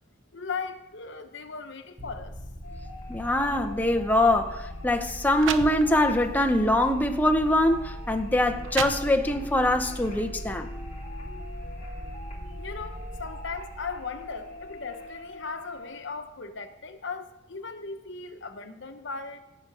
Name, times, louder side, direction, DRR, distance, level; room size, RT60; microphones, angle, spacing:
voice 1, 0.3-2.4 12.6-19.4, left 4 dB, 65° left, 1.1 m, -37 dB
sound 1, 2.0-15.3, equal, 35° right, 2.9 m, -40 dB
sound 2, 2.6-16.0, left 1 dB, 35° left, 2.3 m, -45 dB
voice 2, 3.1-10.7, left 1 dB, 10° left, 0.7 m, -23 dB
sound 3, 4.1-4.3 5.0-5.1 5.4-6.3 6.9-7.0 7.8-7.9 8.4-9.5, right 6 dB, 70° right, 0.7 m, -34 dB
17.0 x 6.8 x 4.8 m
head